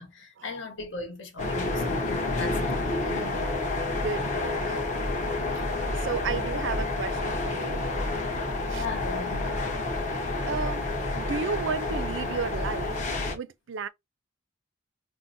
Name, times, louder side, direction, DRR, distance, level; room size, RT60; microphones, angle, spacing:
voice 1, 0.0-2.6 3.0-3.3 5.5-5.7 8.7-9.6, left 4 dB, 65° left, 1.3 m, -38 dB
sound 1, 1.4-13.4, left 2 dB, 35° left, 1.1 m, -29 dB
voice 2, 3.1-4.8 6.0-7.8 8.7-8.9 10.5-13.9, right 5 dB, 70° right, 0.5 m, -34 dB
5.8 x 2.1 x 2.7 m
head